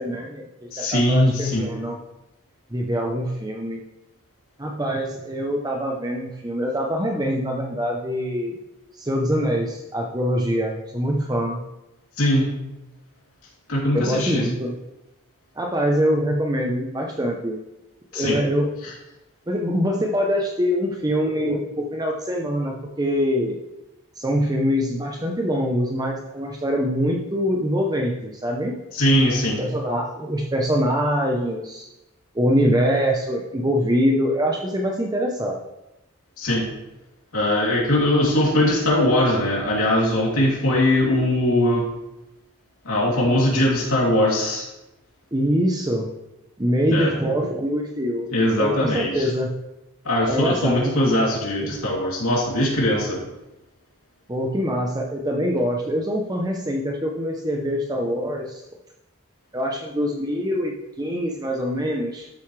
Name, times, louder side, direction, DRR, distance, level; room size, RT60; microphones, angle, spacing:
voice 1, 0.0-2.0 2.7-3.8 4.6-8.6 8.9-11.6 13.9-14.7 15.6-17.6 18.1-18.8 19.5-23.6 24.2-28.8 29.6-31.9 32.3-35.6 45.3-46.0 46.6-48.3 48.6-49.6 50.3-51.0 54.3-58.6 59.5-62.3, equal, 15° right, 0 dB, 0.7 m, -24 dB
voice 2, 0.7-1.6 12.2-12.4 13.7-14.5 18.1-18.4 28.9-29.6 36.4-36.7 37.3-41.8 42.8-44.7 46.9-47.1 48.3-49.3 50.0-53.2, left 1 dB, 75° left, -5 dB, 2.9 m, -20 dB
12.5 x 7.0 x 3.3 m, 0.96 s
head